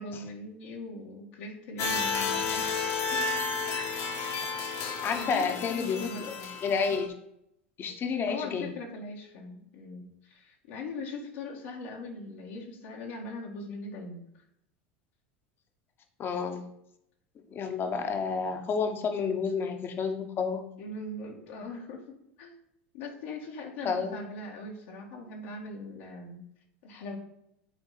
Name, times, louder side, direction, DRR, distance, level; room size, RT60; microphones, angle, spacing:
voice 1, 0.0-3.2 3.7-3.9 5.1-6.5 8.3-14.2 20.8-22.0 22.4-22.6 22.9-26.4 26.8-27.2, left 2 dB, 75° left, -2 dB, 1.9 m, -40 dB
sound 1, 1.8-7.1, left 4 dB, 50° left, 1.4 m, -32 dB
voice 2, 5.0-6.3 6.6-7.1 7.8-8.7 16.2-16.7 17.5-20.6 23.8-24.2, left 5 dB, 35° left, 6 dB, 1.2 m, -30 dB
9.5 x 4.1 x 4.1 m, 0.77 s
hypercardioid pair, 90°, 6 cm